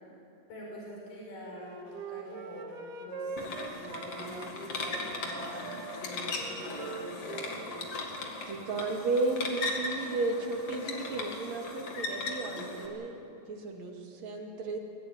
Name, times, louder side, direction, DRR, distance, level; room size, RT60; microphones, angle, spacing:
voice 1, 0.5-7.7, left 1 dB, 70° left, -3 dB, 6.6 m, -45 dB
Wind instrument woodwind instrument, 1.5-4.5 4.8-8.1, right 4 dB, 75° right, 3.1 m, -43 dB
sound 1, 3.4-12.9, left 3 dB, 45° left, 2.9 m, -38 dB
voice 2, 8.5-14.8, right 3 dB, 55° right, 2 dB, 3.4 m, -33 dB
23.0 x 16.5 x 9.5 m, 2.7 s
omnidirectional pair, 4.0 m